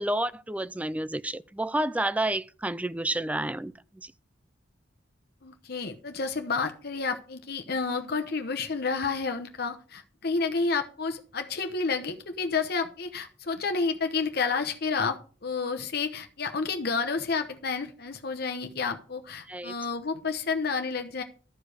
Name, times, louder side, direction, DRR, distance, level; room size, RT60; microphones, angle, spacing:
voice 1, 0.0-4.1 19.5-19.7, right 1 dB, 10° right, 0.4 m, -30 dB
voice 2, 5.4-21.2, left 4 dB, 60° left, 0.9 m, -30 dB
12.5 x 5.1 x 6.3 m
head